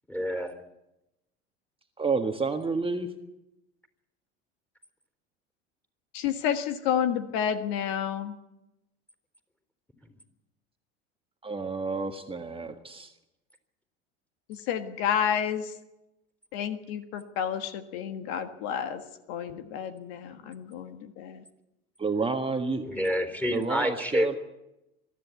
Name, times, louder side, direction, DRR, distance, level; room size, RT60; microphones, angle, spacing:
voice 1, 0.1-0.5 22.8-24.4, equal, 5° left, 3.8 m, -28 dB
voice 2, 2.0-3.1 11.4-13.1 22.0-22.9 23.5-24.4, right 4 dB, 15° right, 1.5 m, -30 dB
voice 3, 6.1-8.4 14.5-15.7 16.5-21.4, left 8 dB, 65° left, 1.6 m, -30 dB
23.0 x 13.5 x 8.3 m
hypercardioid pair, 80°, 33 cm